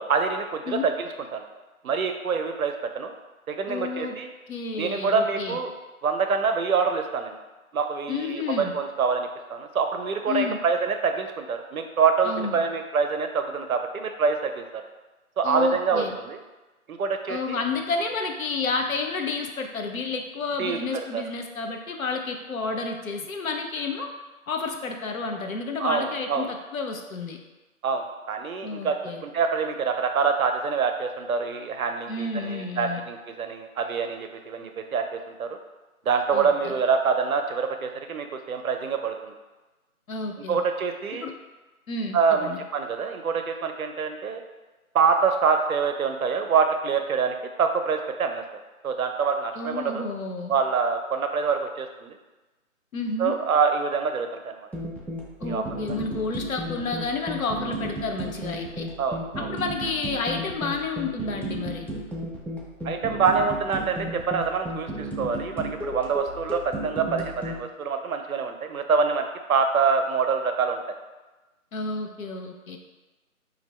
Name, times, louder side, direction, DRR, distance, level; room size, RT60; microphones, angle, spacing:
voice 1, 0.0-1.4 1.8-3.1 3.5-4.3 4.7-5.7 6.0-7.4 7.7-14.8 15.4-16.4 16.9-17.6 20.6-20.8 21.1-21.2 25.8-26.5 27.8-35.5 36.1-39.3 40.5-41.3 42.1-44.4 44.9-48.4 48.8-50.0 50.5-52.2 53.2-54.6 55.4-55.6 59.0-59.5 62.8-70.8, right 5 dB, 70° right, 6 dB, 0.5 m, -26 dB
voice 2, 3.7-4.2 4.5-5.6 8.1-8.8 10.3-10.6 12.2-12.6 15.4-16.1 17.3-24.1 24.5-27.4 28.6-29.2 32.1-33.0 36.3-36.7 40.1-40.6 41.2-41.3 41.9-42.6 49.6-50.5 52.9-53.4 55.4-58.9 59.4-61.9 71.7-72.8, left 4 dB, 70° left, 4 dB, 0.5 m, -30 dB
sound 1, 54.7-67.6, equal, 5° left, 0.3 m, -34 dB
2.8 x 2.6 x 3.1 m, 1.1 s
hypercardioid pair, 180°, 43 cm